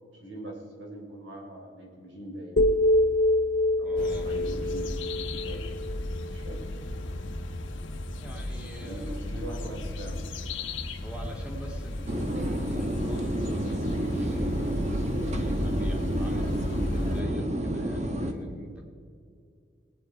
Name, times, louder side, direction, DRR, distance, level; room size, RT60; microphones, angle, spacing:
voice 1, 0.1-2.7 3.8-5.8 6.3-6.8 8.8-10.2, right 1 dB, 70° right, 0 dB, 3.6 m, -42 dB
sound 1, 2.6-6.7, left 1 dB, 50° left, 0.8 m, -26 dB
voice 2, 3.8-4.3 8.2-9.2 11.0-18.9, right 1 dB, 5° right, 0 dB, 2.1 m, -44 dB
sound 2, 4.0-17.2, left 1 dB, 75° left, 1.1 m, -34 dB
sound 3, 12.1-18.3, right 1 dB, 35° right, 1.1 m, -30 dB
19.5 x 9.3 x 4.5 m, 2.3 s
head